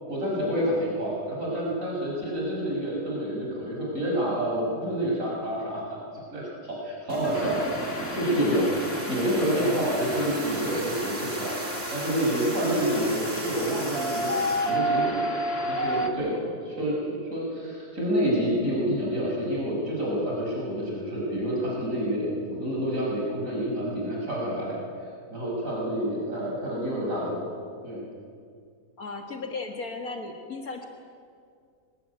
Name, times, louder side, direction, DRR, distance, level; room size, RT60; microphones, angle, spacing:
voice 1, 0.1-6.0 6.3-7.6 8.1-8.7 9.1-11.6 11.9-15.3 15.6-24.8 25.3-27.4 27.8-28.1, equal, 55° right, -5 dB, 6.4 m, -28 dB
sound 1, 7.1-14.8, right 5 dB, 85° right, 2.3 m, -38 dB
sound 2, 7.3-16.1, equal, 40° left, 2.3 m, -31 dB
voice 2, 29.0-30.9, left 3 dB, 65° left, 3 dB, 2.2 m, -35 dB
24.0 x 19.5 x 9.5 m, 2.3 s
omnidirectional pair, 1.6 m